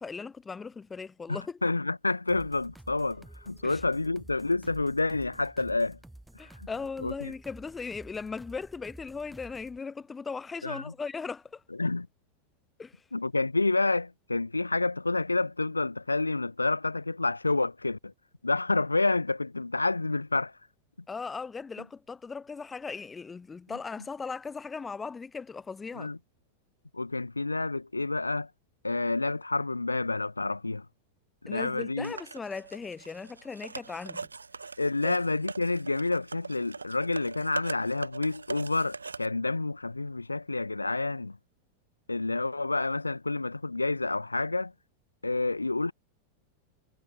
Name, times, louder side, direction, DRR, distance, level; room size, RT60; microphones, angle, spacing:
voice 1, 0.0-1.6 3.6-3.8 6.4-11.6 12.8-13.0 21.1-26.1 31.5-34.3 35.0-35.2, left 5 dB, 15° left, 0.5 m, -38 dB
voice 2, 1.3-6.0 6.4-6.7 7.0-7.3 10.6-10.9 11.8-12.1 13.1-18.1 18.4-20.5 26.0-26.2 26.9-28.5 28.8-30.9 31.4-32.2 34.8-41.4 42.1-44.7 45.2-45.9, left 3 dB, 80° left, 0.4 m, -29 dB
sound 1, 2.3-9.8, right 1 dB, 5° right, 1.9 m, -51 dB
sound 2, 32.0-39.3, right 4 dB, 75° right, 0.6 m, -42 dB
figure-of-eight pair, 90°, 0 cm